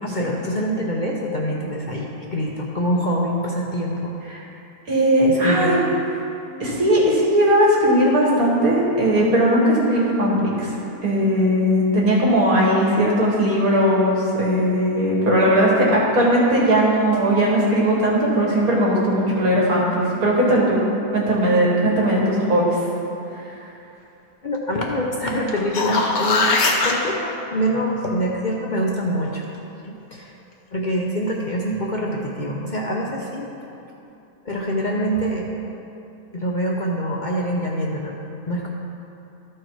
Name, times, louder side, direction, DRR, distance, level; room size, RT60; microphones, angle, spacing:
voice 1, 0.0-4.2 5.3-5.8 24.4-26.5 26.8-29.4 29.9-30.3 30.7-33.5 34.4-35.5 36.3-38.2 38.5-38.7, equal, 50° left, -2 dB, 0.6 m, -25 dB
voice 2, 4.9-5.8 6.6-10.7 11.0-20.8 21.1-22.8, equal, 70° right, -4 dB, 2.2 m, -18 dB
sound 1, 25.5-26.9 31.7-31.8, left 3 dB, 70° left, 1.4 m, -20 dB
13.5 x 4.7 x 4.6 m, 2.8 s
omnidirectional pair, 1.6 m